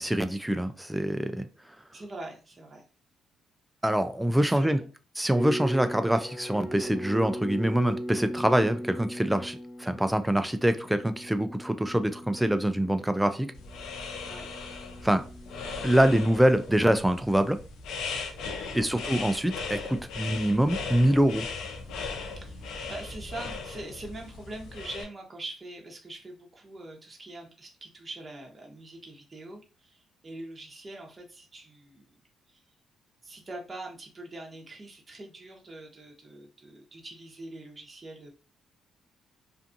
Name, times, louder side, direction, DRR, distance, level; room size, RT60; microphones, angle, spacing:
voice 1, 0.0-1.4 3.8-4.8 5.2-13.5 15.0-15.2 15.8-17.6 18.7-21.5, right 1 dB, 5° right, 0.3 m, -25 dB
voice 2, 1.9-2.8 4.3-4.9 14.2-14.5 18.6-19.0 22.4-32.2 32.5-32.6 33.2-38.3, right 2 dB, 30° right, 0.8 m, -43 dB
sound 1, 5.3-16.4, equal, 30° left, 0.7 m, -39 dB
sound 2, 13.5-25.0, left 4 dB, 85° left, 0.5 m, -38 dB
2.6 x 2.3 x 2.5 m
cardioid pair, 90°, 0 cm